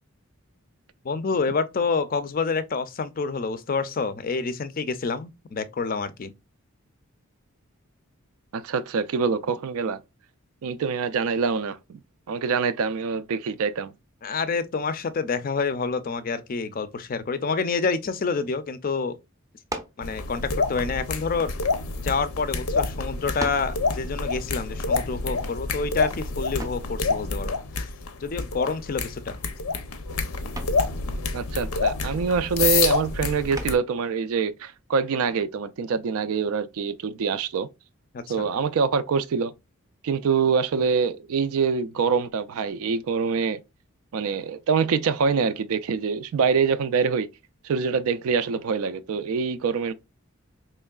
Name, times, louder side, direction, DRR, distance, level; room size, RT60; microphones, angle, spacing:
voice 1, 1.0-6.3 14.2-19.2 20.0-21.5 22.0-27.6 28.2-29.4 38.1-38.5, left 4 dB, 40° left, 0.4 m, -28 dB
voice 2, 8.5-10.0 10.6-12.0 12.3-13.9 31.3-37.7 38.3-39.5 40.0-43.6 44.1-47.3 47.6-49.9, right 5 dB, 80° right, 0.4 m, -25 dB
sound 1, 19.7-20.1 21.0-22.2 22.9-23.0 23.4-23.8 26.6-26.9 28.8-29.2 29.6-29.9 30.6-30.9 33.5-34.0, right 1 dB, 15° right, 0.5 m, -37 dB
sound 2, 20.0-33.8, left 4 dB, 85° left, 0.6 m, -28 dB
4.4 x 3.1 x 2.3 m
head